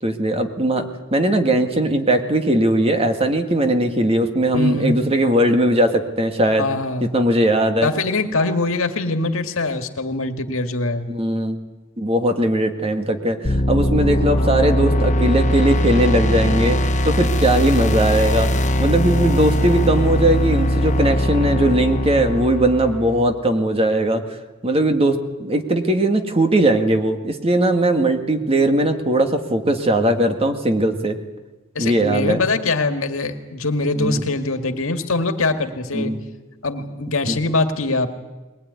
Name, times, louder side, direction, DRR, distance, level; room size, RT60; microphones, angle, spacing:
voice 1, 0.0-6.6 7.0-7.9 11.1-11.6 12.0-24.2 24.6-31.2 31.8-32.4 34.0-34.2 35.9-36.2 37.3-37.4, right 1 dB, 30° right, 6 dB, 2.0 m, -19 dB
voice 2, 4.5-5.0 6.6-7.1 7.8-11.1 31.8-36.1 36.6-38.1, left 3 dB, 80° left, 7 dB, 2.0 m, -23 dB
sound 1, 13.4-23.3, equal, 35° left, 1.1 m, -20 dB
21.5 x 20.0 x 9.7 m, 1.1 s
head